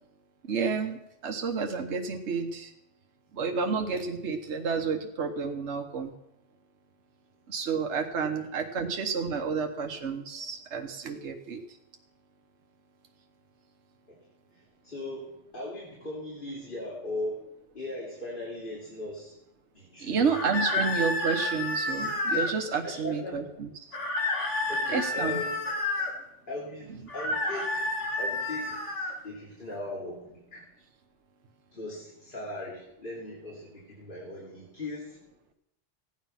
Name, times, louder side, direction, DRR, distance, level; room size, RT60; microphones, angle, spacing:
voice 1, 0.5-2.7 3.3-6.1 7.5-11.6 20.0-24.0 24.9-25.4, right 5 dB, 70° right, 3 dB, 1.4 m, -30 dB
voice 2, 14.5-17.4 17.7-19.4 19.7-20.7 22.8-23.5 24.6-25.7 26.5-27.9 28.2-28.9 29.2-30.6 31.7-35.2, left 1 dB, 45° left, -4 dB, 3.1 m, -39 dB
sound 1, 20.3-22.5 23.9-26.1 27.1-29.1, left 2 dB, 75° left, 2.4 m, -30 dB
16.0 x 9.5 x 5.8 m, 0.84 s
omnidirectional pair, 1.2 m